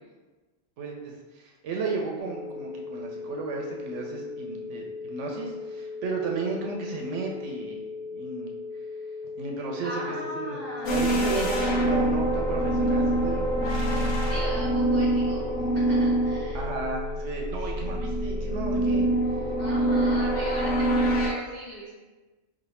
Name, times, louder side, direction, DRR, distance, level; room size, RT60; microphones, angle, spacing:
voice 1, 0.8-8.5 9.4-13.5 16.5-19.0 19.4-19.5, right 3 dB, 70° right, 0 dB, 0.9 m, -34 dB
sound 1, 2.2-21.3, left 4 dB, 90° left, 0.4 m, -38 dB
voice 2, 9.8-11.7 13.9-16.6 19.6-21.9, equal, 15° left, -6 dB, 0.5 m, -39 dB
sound 2, 10.9-21.3, right 1 dB, 65° left, 1.0 m, -25 dB
3.2 x 2.4 x 4.1 m, 1.2 s
omnidirectional pair, 1.4 m